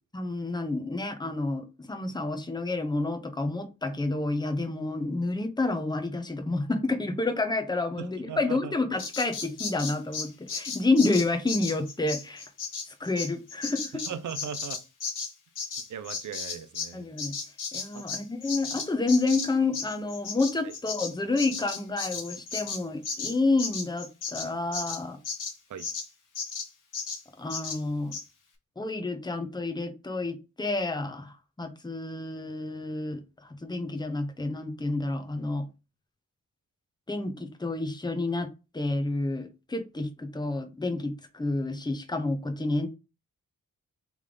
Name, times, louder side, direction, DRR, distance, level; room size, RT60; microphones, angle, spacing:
voice 1, 0.1-12.4 13.0-14.0 16.9-17.3 17.7-25.2 27.4-28.1 28.8-33.2 33.6-35.7 37.1-38.5 38.7-42.9, left 2 dB, 15° left, 0.8 m, -29 dB
voice 2, 8.0-8.7 14.1-14.8 15.9-17.1 17.9-18.0 20.6-20.7 25.7-25.9, right 8 dB, 65° right, 0.6 m, -38 dB
Bird vocalization bird call bird song, 9.0-16.9 17.2-26.1 26.4-26.7 26.9-27.2 27.5-27.8 28.1-28.2, left 5 dB, 70° left, 1.2 m, -35 dB
3.4 x 3.1 x 3.8 m
cardioid pair, 65°, 33 cm